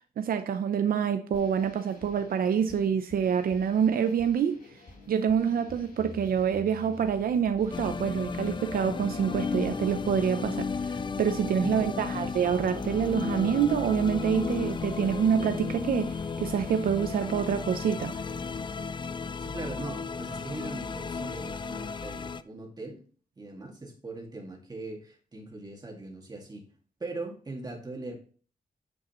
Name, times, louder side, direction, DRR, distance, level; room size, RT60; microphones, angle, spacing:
voice 1, 0.2-4.6 5.1-18.1, right 7 dB, 80° right, 0.6 m, -27 dB
sound 1, 1.3-18.8, left 2 dB, 80° left, 3.6 m, -48 dB
sound 2, 7.7-22.4, left 5 dB, 30° left, 0.4 m, -34 dB
voice 2, 11.6-12.5 19.4-23.0 23.4-26.7 27.0-28.2, right 2 dB, 25° right, 2.0 m, -40 dB
8.5 x 7.7 x 3.0 m
wide cardioid pair, 125°, 15 cm